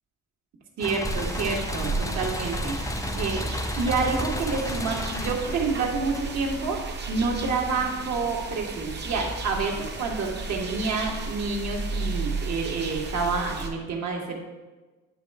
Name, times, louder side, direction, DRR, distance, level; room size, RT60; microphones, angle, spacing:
sound 1, 0.8-6.7, left 3 dB, 10° left, 0.3 m, -34 dB
voice 1, 0.8-2.8 3.2-3.4 3.8-14.4, right 4 dB, 60° right, 0 dB, 1.5 m, -28 dB
sound 2, 1.0-13.7, right 3 dB, 35° right, 0.9 m, -33 dB
9.2 x 3.2 x 4.7 m, 1.2 s
cardioid pair, 90°, 30 cm